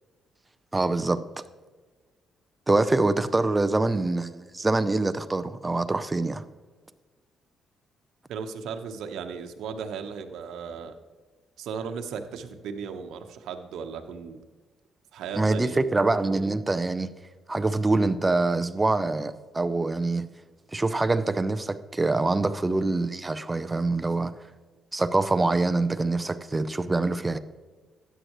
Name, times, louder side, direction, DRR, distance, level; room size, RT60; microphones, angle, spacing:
voice 1, 0.7-1.2 2.7-6.4 15.4-17.1 17.5-20.3 20.7-24.3 24.9-27.4, right 2 dB, 20° right, 0.6 m, -25 dB
voice 2, 8.3-11.0 11.6-14.4 15.1-15.9, right 6 dB, 80° right, 1.0 m, -36 dB
13.0 x 9.2 x 3.1 m
cardioid pair, 90°, 0 cm